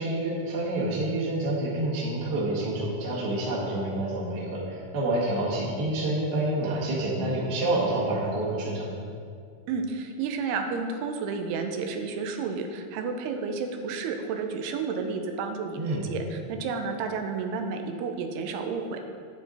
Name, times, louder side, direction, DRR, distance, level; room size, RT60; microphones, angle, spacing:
voice 1, 0.0-8.9 15.8-16.1, right 1 dB, 40° right, -5 dB, 1.6 m, -28 dB
voice 2, 9.7-19.0, right 5 dB, 85° right, 5 dB, 2.7 m, -31 dB
9.4 x 8.4 x 4.0 m, 2.2 s
omnidirectional pair, 4.5 m